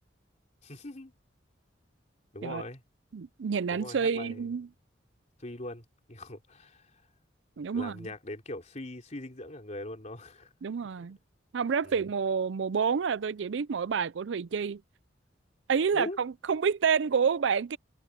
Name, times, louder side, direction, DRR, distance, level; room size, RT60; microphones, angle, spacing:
voice 1, 0.6-1.1 2.3-2.8 3.7-4.5 5.4-7.0 7.7-10.5 11.0-11.1 11.8-12.1 15.9-16.2, left 1 dB, 40° left, 3.6 m, -41 dB
voice 2, 3.1-4.7 7.6-8.1 10.6-11.2 11.5-14.8 15.7-17.8, right 6 dB, 75° right, 0.5 m, -28 dB
head